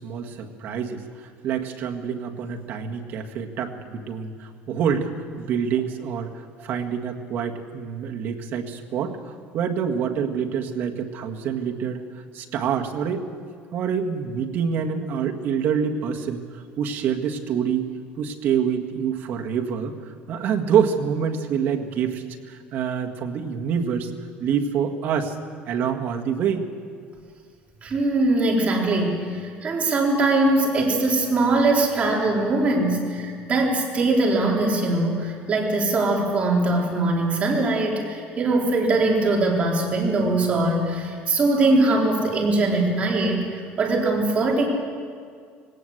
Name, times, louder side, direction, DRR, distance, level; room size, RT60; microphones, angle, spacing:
voice 1, 0.0-5.1 5.4-13.2 13.7-16.4 16.8-17.9 18.2-24.1 24.4-25.4 25.7-26.7, right 7 dB, 55° right, 3 dB, 1.8 m, -26 dB
voice 2, 27.8-44.6, right 2 dB, 30° right, -1 dB, 4.0 m, -21 dB
19.5 x 18.0 x 8.0 m, 2.1 s
cardioid pair, 135°, 4 cm